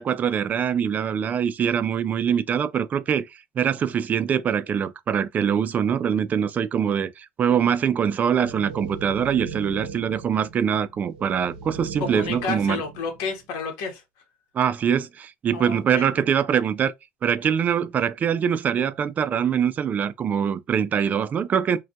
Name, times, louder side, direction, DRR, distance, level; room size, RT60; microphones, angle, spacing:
voice 1, 0.0-12.8 14.5-16.9 17.2-21.8, right 8 dB, 35° right, 0.3 m, -23 dB
sound 1, 8.4-13.5, right 6 dB, 90° right, 0.6 m, -38 dB
voice 2, 12.0-14.0 15.5-16.1, left 5 dB, 75° left, 0.8 m, -31 dB
2.2 x 2.1 x 2.6 m
supercardioid pair, 95°, 5 cm